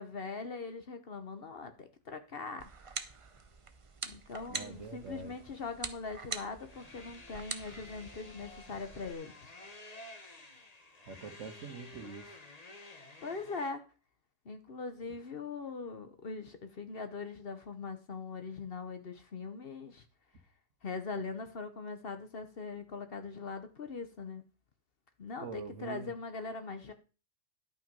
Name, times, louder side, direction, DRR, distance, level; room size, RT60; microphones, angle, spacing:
voice 1, 0.0-2.7 4.0-9.5 13.2-13.8 14.4-20.0 20.8-24.4 25.2-26.9, left 4 dB, 50° left, 1.1 m, -41 dB
sound 1, 2.6-9.1, right 5 dB, 35° right, 0.5 m, -45 dB
sound 2, 4.5-13.7, left 2 dB, 30° left, 1.3 m, -53 dB
voice 2, 4.5-5.3 11.1-12.3 25.4-26.1, right 5 dB, 65° right, 1.5 m, -44 dB
11.0 x 5.8 x 5.2 m
omnidirectional pair, 1.4 m